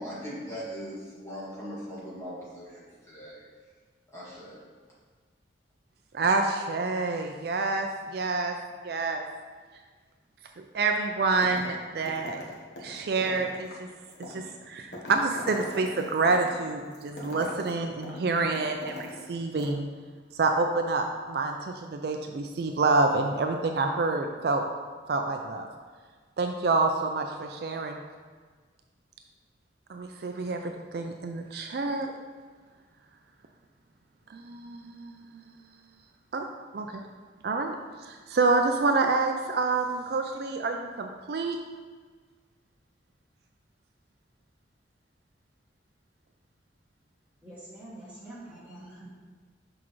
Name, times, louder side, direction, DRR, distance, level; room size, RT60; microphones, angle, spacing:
voice 1, 0.0-3.4 4.1-4.6, equal, 15° left, -9 dB, 1.9 m, -40 dB
voice 2, 6.1-8.5 8.8-9.2 10.7-12.4 12.8-13.9 14.3-19.9 20.3-24.7 25.1-25.7 26.4-28.0 29.9-32.1 34.3-35.4 36.3-36.4 36.7-37.0 37.4-37.7 38.0-41.6, right 3 dB, 55° right, 4 dB, 0.4 m, -28 dB
sound 1, 11.4-11.8 12.1-19.3 19.6-19.7, left 2 dB, 65° left, 1.2 m, -42 dB
voice 3, 47.4-49.1, right 1 dB, 10° right, -10 dB, 1.9 m, -45 dB
6.2 x 5.8 x 3.1 m, 1.5 s
head